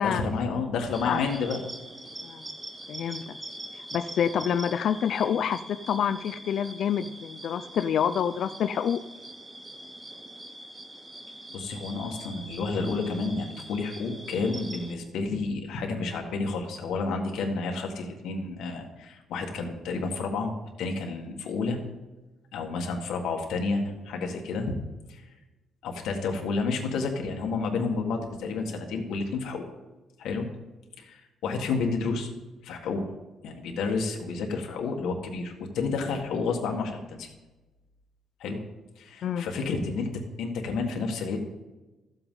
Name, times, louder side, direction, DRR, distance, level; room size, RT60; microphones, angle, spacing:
voice 1, 0.0-1.6 11.5-20.5 20.8-21.8 22.5-24.7 25.1-25.2 25.8-29.6 30.2-30.5 31.0-32.3 32.6-33.0 33.4-37.3 38.4-38.6 39.0-40.1 40.4-41.4, left 4 dB, 80° left, 2 dB, 1.6 m, -30 dB
Insects in Joshua Tree National Park, 0.9-14.9, right 1 dB, 15° right, 0.8 m, -43 dB
voice 2, 2.9-3.4 3.9-9.0 39.2-39.5, left 8 dB, 50° left, 11 dB, 0.3 m, -27 dB
14.0 x 7.8 x 3.8 m, 1.1 s
cardioid pair, 180°, 0 cm